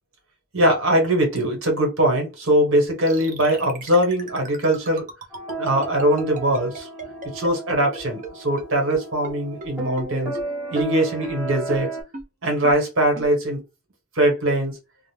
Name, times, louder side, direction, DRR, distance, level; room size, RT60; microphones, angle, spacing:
voice 1, 0.5-5.1 5.6-6.9 7.3-10.4 10.7-11.9 12.4-13.6 14.1-14.8, right 1 dB, 80° right, 1.1 m, -21 dB
sound 1, 3.1-8.3 8.6-8.7 8.9-9.0 9.2-9.3 9.6-9.7 10.0-10.1 10.3-10.4 10.7-10.8 11.2-11.3 11.7-11.8 12.1-12.2 12.6-12.7 13.1-13.3, right 2 dB, 40° right, 0.6 m, -35 dB
sound 2, 5.3-12.0, right 3 dB, 5° right, 1.0 m, -34 dB
2.4 x 2.1 x 3.2 m
head